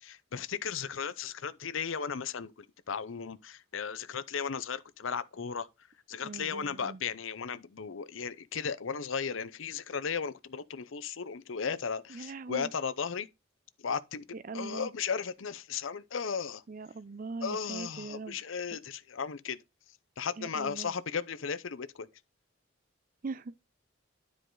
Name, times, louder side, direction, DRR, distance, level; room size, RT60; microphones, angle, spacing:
voice 1, 0.0-5.7 6.1-13.3 13.8-14.2 14.5-16.6 17.4-19.6 20.2-22.1, left 6 dB, 75° left, 0.7 m, -35 dB
voice 2, 6.2-7.0 12.1-12.7 14.3-14.9 16.7-18.4 18.7-18.8 20.4-20.9 23.2-23.6, right 4 dB, 45° right, 0.5 m, -41 dB
10.0 x 4.8 x 3.8 m
head